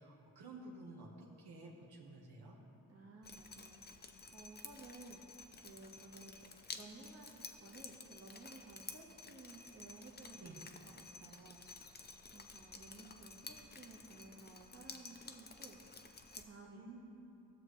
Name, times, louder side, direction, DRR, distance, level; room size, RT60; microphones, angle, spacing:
voice 1, 0.0-2.6 10.4-10.6 16.6-17.0, right 2 dB, 80° right, -3 dB, 1.3 m, -53 dB
voice 2, 2.9-6.5 6.7-17.0, right 2 dB, 40° right, -1 dB, 1.3 m, -56 dB
Drip, 3.2-16.4, left 4 dB, 25° left, 0.6 m, -53 dB
15.5 x 6.6 x 3.2 m, 2.8 s
cardioid pair, 80°, 38 cm